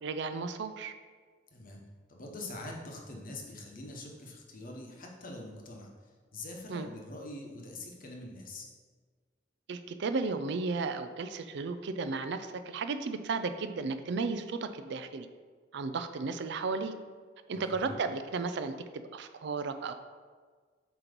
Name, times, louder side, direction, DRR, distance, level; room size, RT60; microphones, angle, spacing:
voice 1, 0.0-0.9 6.7-6.9 9.7-15.3 15.7-16.9 17.5-19.9, right 4 dB, 65° right, 10 dB, 0.4 m, -34 dB
voice 2, 1.5-1.8 2.1-5.9 6.3-8.7 17.5-18.0, left 2 dB, 45° left, 0 dB, 1.1 m, -44 dB
7.7 x 3.0 x 5.2 m, 1.5 s
head